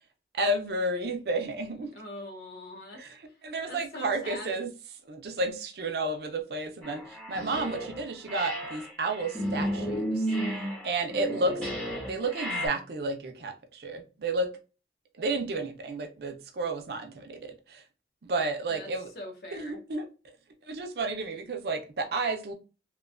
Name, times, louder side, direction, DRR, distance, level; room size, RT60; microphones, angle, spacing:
voice 1, 0.3-1.9 2.9-3.1 3.4-4.7 5.1-11.6 12.1-14.5 15.1-17.8 18.2-19.1 19.5-20.1 20.7-22.5, right 2 dB, 65° right, 0.5 m, -32 dB
voice 2, 1.8-4.5 18.7-18.9 19.1-19.8, left 1 dB, 60° left, 0.8 m, -43 dB
sound 1, 6.8-8.0 8.3-12.7, equal, 5° left, 0.6 m, -33 dB
3.0 x 2.1 x 2.4 m
head